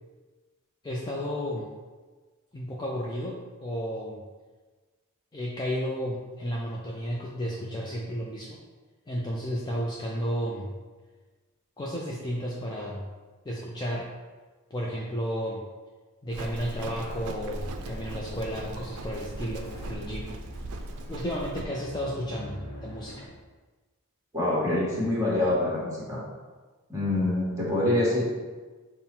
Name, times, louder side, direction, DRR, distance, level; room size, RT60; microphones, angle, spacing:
voice 1, 0.8-1.7 2.5-4.2 5.3-8.6 9.1-10.7 11.8-13.1 13.5-14.1 14.7-15.6 16.2-20.4 21.1-23.3, equal, 20° left, -3 dB, 0.3 m, -33 dB
Livestock farm animals working animals, 16.3-21.7, right 2 dB, 75° right, 0.4 m, -38 dB
sound 1, 16.8-23.3, left 1 dB, 85° left, 1.0 m, -45 dB
voice 2, 24.3-26.2 26.9-28.2, left 1 dB, 15° right, -7 dB, 1.3 m, -25 dB
5.5 x 2.0 x 4.3 m, 1.3 s
head